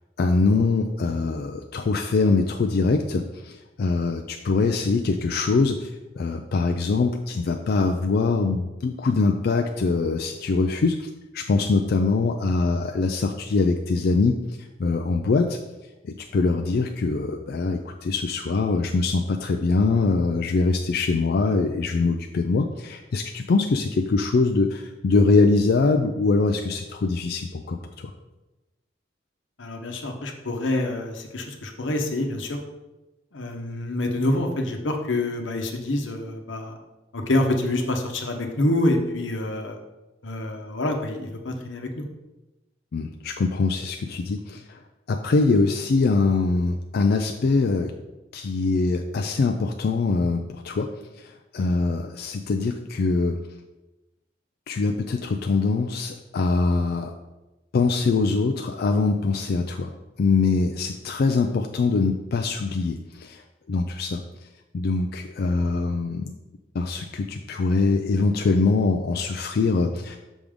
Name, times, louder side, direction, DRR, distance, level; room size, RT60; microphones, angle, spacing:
voice 1, 0.2-5.9 6.2-15.6 16.0-28.1 42.9-44.8 45.1-47.9 48.3-50.9 51.2-53.4 54.7-57.2 57.7-59.9 60.2-63.4 63.7-64.2 64.7-66.3 66.7-70.2, left 3 dB, 55° left, 4 dB, 0.4 m, -23 dB
voice 2, 29.6-32.6 33.3-36.8 37.1-39.8 40.2-42.1, left 1 dB, 85° left, 4 dB, 0.9 m, -26 dB
6.2 x 5.1 x 3.6 m, 1.0 s
head